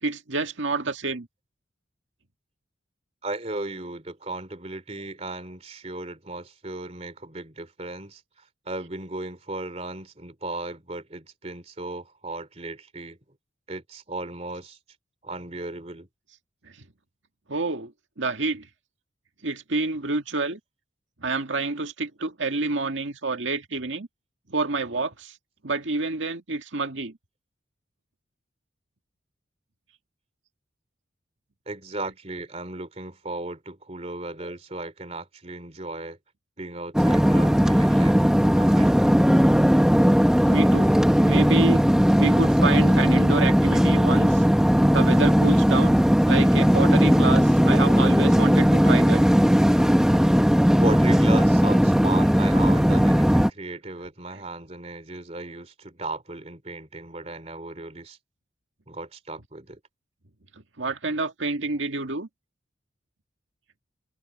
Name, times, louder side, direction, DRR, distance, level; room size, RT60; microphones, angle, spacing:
voice 1, 0.0-1.3 16.6-16.7 17.5-17.9 18.2-18.7 19.4-20.6 21.2-24.1 24.5-25.3 25.6-27.2 40.5-40.9 41.2-41.8 42.2-44.4 44.9-46.0 46.3-49.2 60.8-62.3, right 3 dB, 75° right, 1.9 m, -28 dB
voice 2, 3.2-13.2 13.7-14.8 15.2-16.1 31.7-36.2 36.6-38.2 38.5-39.2 50.7-58.2 58.9-59.8, right 2 dB, 35° right, 2.9 m, -36 dB
sound 1, 36.9-53.5, equal, 5° right, 0.9 m, -18 dB
head